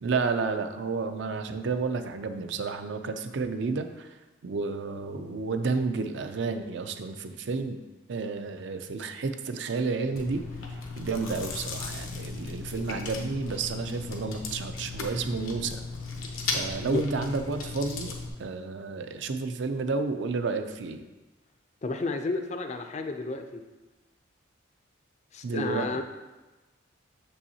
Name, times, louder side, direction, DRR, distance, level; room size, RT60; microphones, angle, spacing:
voice 1, 0.0-4.2 4.4-7.8 8.1-10.4 11.0-15.8 16.5-18.1 18.4-21.0 25.4-26.0, right 4 dB, 60° right, 8 dB, 0.4 m, -31 dB
Chewing mastication, 10.1-18.3, left 4 dB, 90° left, 0.9 m, -36 dB
voice 2, 21.8-23.6 25.3-26.0, left 3 dB, 35° left, 6 dB, 0.4 m, -31 dB
7.0 x 5.5 x 2.8 m, 1.2 s
head